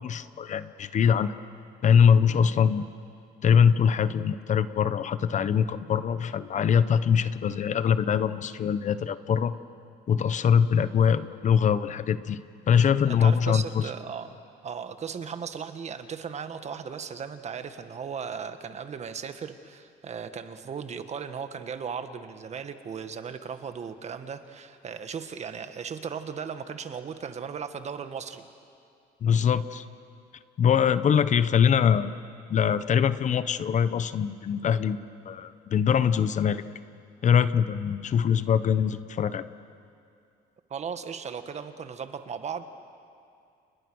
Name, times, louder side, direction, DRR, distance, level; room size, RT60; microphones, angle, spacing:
voice 1, 0.0-1.3 1.8-2.9 3.4-9.6 10.1-12.4 12.7-13.9 29.2-29.8 30.6-32.1 32.5-36.6 37.2-39.5, left 7 dB, 45° left, 13 dB, 1.0 m, -23 dB
voice 2, 13.1-28.4 40.7-42.6, right 6 dB, 40° right, 9 dB, 1.6 m, -37 dB
29.5 x 29.5 x 6.4 m, 2.4 s
cardioid pair, 110°, 17 cm